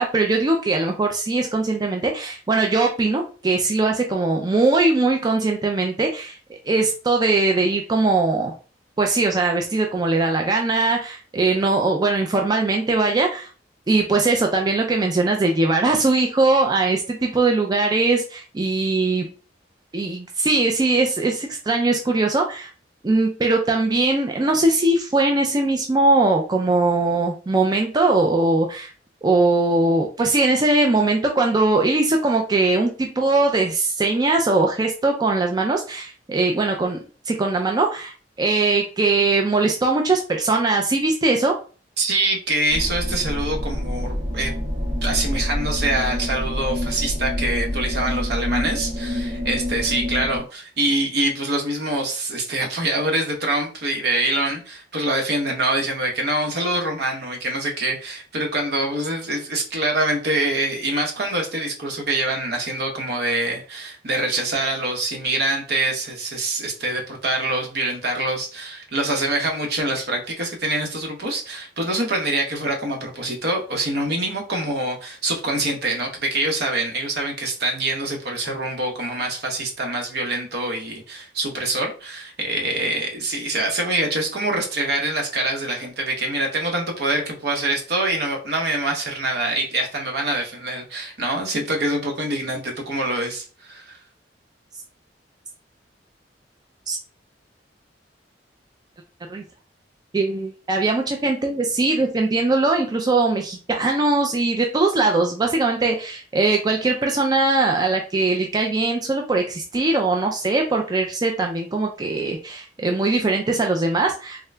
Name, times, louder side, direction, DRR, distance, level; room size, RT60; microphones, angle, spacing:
voice 1, 0.0-6.4 6.7-8.5 9.0-13.5 13.9-19.3 19.9-22.7 23.0-28.9 29.2-37.0 37.3-38.1 38.4-41.6 96.9-97.0 99.3-99.4 100.1-114.4, right 3 dB, 25° right, 2 dB, 0.4 m, -20 dB
voice 2, 42.0-44.5 45.0-94.0, right 2 dB, 65° right, 1 dB, 1.0 m, -25 dB
sound 1, 42.7-50.4, left 1 dB, 80° right, 1.9 m, -27 dB
3.7 x 2.2 x 3.2 m, 0.37 s
head